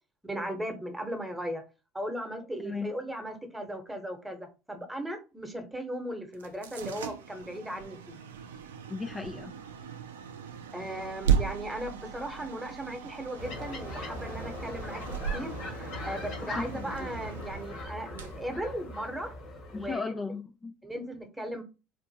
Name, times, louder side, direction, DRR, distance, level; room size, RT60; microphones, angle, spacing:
voice 1, 0.2-1.6 1.9-8.2 10.7-19.3 19.7-20.1 20.8-21.6, right 1 dB, 10° right, 6 dB, 1.0 m, -37 dB
sound 1, 6.3-19.3, right 8 dB, 85° right, 0.4 m, -36 dB
voice 2, 8.9-9.5 16.6-16.8 19.7-20.7, left 4 dB, 25° left, 6 dB, 0.3 m, -35 dB
sound 2, 13.4-19.9, left 2 dB, 70° left, 1.3 m, -40 dB
3.6 x 2.5 x 2.7 m, 0.30 s
hypercardioid pair, 70°, 0 cm